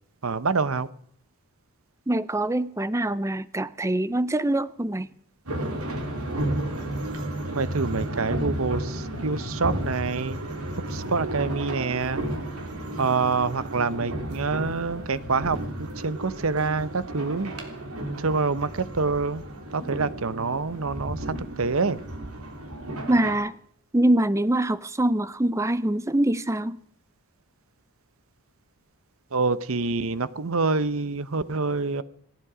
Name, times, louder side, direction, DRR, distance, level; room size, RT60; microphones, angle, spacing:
voice 1, 0.2-0.9 7.5-10.4 10.9-12.2 13.0-15.6 16.0-17.5 18.2-19.4 19.7-22.0 29.3-32.0, right 4 dB, 65° right, 17 dB, 0.8 m, -26 dB
voice 2, 2.1-5.1 23.1-23.6 23.9-26.8, right 1 dB, 15° right, 17 dB, 0.5 m, -24 dB
sound 1, 5.5-23.4, right 1 dB, 80° right, 3.4 m, -33 dB
28.0 x 9.8 x 4.9 m, 0.67 s
head